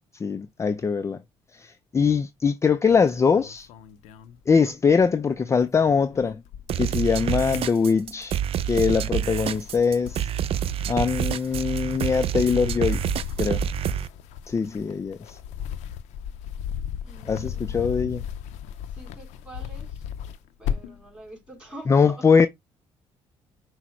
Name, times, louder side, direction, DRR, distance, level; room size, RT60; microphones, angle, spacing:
voice 1, 0.1-1.2 1.5-3.7 4.5-6.4 6.8-8.4 8.7-10.3 10.9-13.0 13.4-13.6 14.5-15.4 17.3-18.2 21.9-22.5, left 5 dB, 25° left, 0.3 m, -22 dB
sound 1, 2.9-5.0 5.3-6.9 7.3-8.3 8.8-21.1, left 8 dB, 90° left, 0.5 m, -36 dB
sound 2, 6.7-14.1, right 10 dB, 55° right, 0.3 m, -27 dB
voice 2, 17.0-17.8 18.9-20.1 20.6-22.3, right 2 dB, 10° right, 2.9 m, -45 dB
6.0 x 2.0 x 4.3 m
cardioid pair, 80°, 11 cm